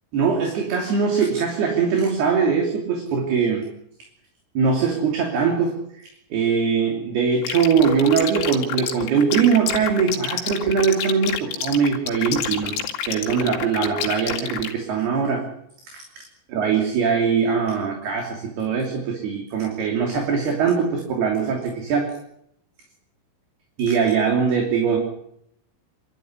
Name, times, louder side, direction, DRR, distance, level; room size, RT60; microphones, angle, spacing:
voice 1, 0.1-3.6 4.5-5.8 6.3-12.7 13.1-15.5 15.9-16.2 16.5-22.1 23.8-25.0, right 6 dB, 55° right, 1 dB, 4.8 m, -21 dB
sound 1, 7.4-14.7, left 9 dB, 75° left, 4.7 m, -28 dB
27.0 x 13.5 x 9.7 m, 0.76 s
omnidirectional pair, 5.8 m